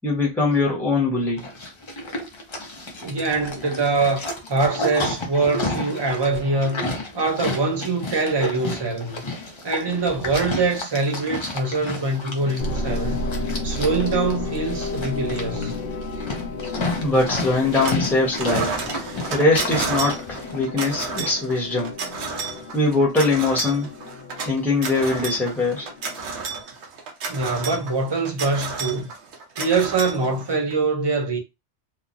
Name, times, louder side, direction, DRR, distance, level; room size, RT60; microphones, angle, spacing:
voice 1, 0.0-1.5 17.0-18.7 19.3-21.9 22.7-23.9 24.4-25.9, left 2 dB, ahead, 0.7 m, -22 dB
Livestock farm animals working animals, 1.4-20.6, left 2 dB, 45° left, 0.4 m, -32 dB
voice 2, 3.0-4.2 4.5-6.9 7.1-9.2 9.6-13.2 13.6-15.7 27.3-29.1 29.6-31.4, right 3 dB, 30° right, 0.5 m, -23 dB
sound 1, 12.6-26.6, left 2 dB, 65° left, 0.8 m, -33 dB
sound 2, 17.2-18.1 18.3-30.7, right 4 dB, 75° right, 1.0 m, -31 dB
2.9 x 2.0 x 2.5 m
omnidirectional pair, 1.2 m